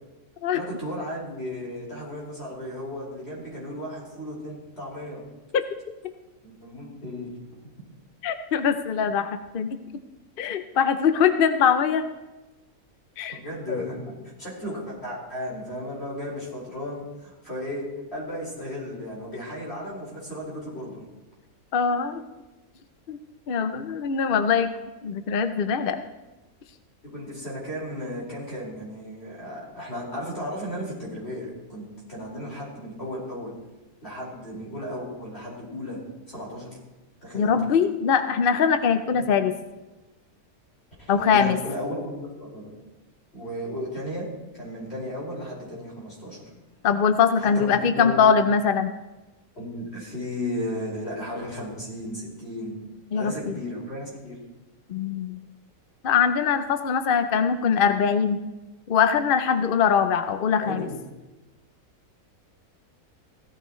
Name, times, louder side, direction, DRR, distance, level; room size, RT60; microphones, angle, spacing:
voice 1, 0.5-5.2 6.4-7.3 13.3-14.1 14.4-17.9 18.1-21.0 27.1-33.5 34.0-36.0 36.3-36.8 37.2-37.6 39.1-39.3 41.0-42.7 43.3-44.3 44.5-46.4 47.4-47.7 48.0-48.2 49.6-52.7 53.1-54.4 60.6-61.0, left 1 dB, 40° left, -6 dB, 5.3 m, -35 dB
voice 2, 8.2-9.7 10.4-12.1 13.2-13.4 13.7-13.9 21.7-22.2 23.1-23.2 23.5-24.7 25.0-26.0 37.3-39.5 41.1-41.6 46.8-48.9 53.1-53.5 54.9-55.4 56.0-58.4 58.9-60.9, left 7 dB, 60° left, 9 dB, 0.6 m, -22 dB
16.0 x 13.5 x 3.1 m, 1.1 s
omnidirectional pair, 1.6 m